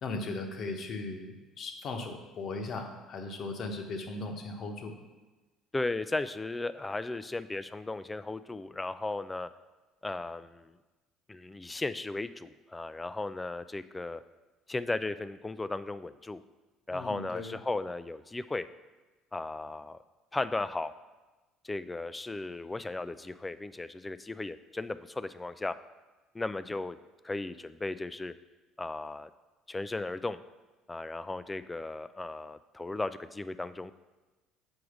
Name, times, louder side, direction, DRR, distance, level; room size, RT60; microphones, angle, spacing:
voice 1, 0.0-4.9 16.9-17.6, left 3 dB, 55° left, 4 dB, 1.1 m, -38 dB
voice 2, 5.7-9.5 10.0-10.7 11.3-14.2 14.7-16.4 16.9-18.7 19.3-20.0 20.3-20.9 21.6-25.8 26.3-27.0 27.2-28.3 28.8-29.3 29.7-30.4 30.9-33.9, left 2 dB, 15° left, 14 dB, 0.3 m, -36 dB
6.4 x 4.7 x 5.0 m, 1.2 s
supercardioid pair, 75°, 0 cm